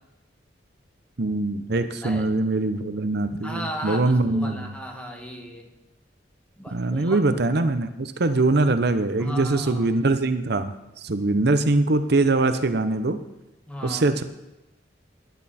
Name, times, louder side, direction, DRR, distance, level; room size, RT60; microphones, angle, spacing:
voice 1, 1.2-4.7 6.7-13.2 13.8-14.2, right 2 dB, 60° right, 10 dB, 0.8 m, -23 dB
voice 2, 3.4-5.7 6.6-7.2 8.3-8.4 9.2-9.9 13.7-14.0, equal, 5° left, 2 dB, 1.9 m, -36 dB
17.5 x 11.0 x 4.3 m, 0.96 s
head